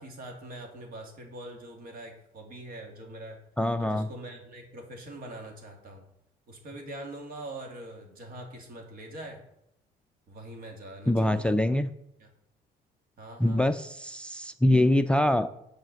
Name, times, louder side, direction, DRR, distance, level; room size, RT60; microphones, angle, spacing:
voice 1, 0.0-3.4 3.8-6.0 6.5-9.4 10.3-11.6 12.2-12.3 13.2-13.7, right 1 dB, 60° right, 3 dB, 2.4 m, -43 dB
voice 2, 3.6-4.1 11.1-11.9 13.4-15.5, left 1 dB, 5° left, 11 dB, 0.4 m, -24 dB
7.8 x 4.9 x 6.8 m, 0.78 s
cardioid pair, 110°, 17 cm